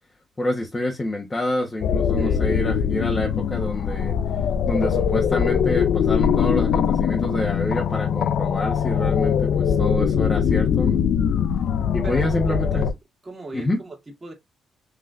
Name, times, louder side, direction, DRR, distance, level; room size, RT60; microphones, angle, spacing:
voice 1, 0.4-4.1 4.7-11.0 11.9-12.9 13.5-13.8, left 1 dB, 20° left, 1.2 m, -27 dB
sound 1, 1.8-12.9, left 7 dB, 65° left, 0.6 m, -22 dB
voice 2, 12.0-12.9 13.2-14.3, right 2 dB, 25° right, 2.1 m, -38 dB
5.9 x 3.2 x 2.5 m
cardioid pair, 90°, 0 cm